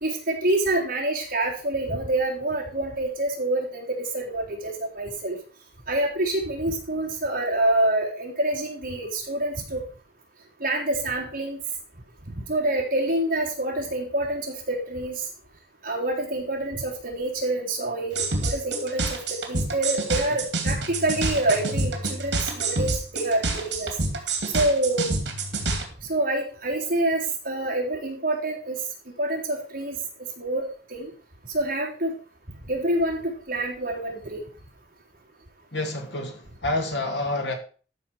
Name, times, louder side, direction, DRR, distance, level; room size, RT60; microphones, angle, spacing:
voice 1, 0.0-5.4 5.9-9.8 10.6-11.6 12.3-15.2 15.8-19.2 19.5-23.9 24.5-25.1 26.1-28.8 29.2-30.0 30.4-31.1 31.5-32.1 32.7-34.4, right 1 dB, 55° right, 3.8 m, -26 dB
sound 1, 18.1-25.8, right 2 dB, 80° right, 2.7 m, -27 dB
voice 2, 35.7-37.5, left 2 dB, 85° left, 2.5 m, -28 dB
13.5 x 6.1 x 4.8 m
head